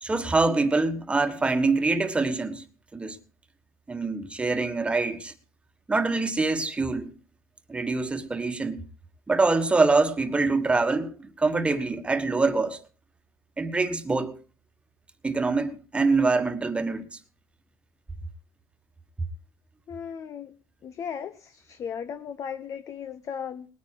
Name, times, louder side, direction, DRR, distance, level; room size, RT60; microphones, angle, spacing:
voice 1, 0.0-2.6 2.9-3.2 3.9-5.3 5.9-7.1 7.7-8.8 9.3-12.8 13.6-14.3 15.2-17.0, right 3 dB, 15° right, 1.6 m, -25 dB
voice 2, 19.9-20.5 20.8-23.7, left 7 dB, 45° left, 0.9 m, -36 dB
20.0 x 9.5 x 4.7 m
cardioid pair, 110°, 7 cm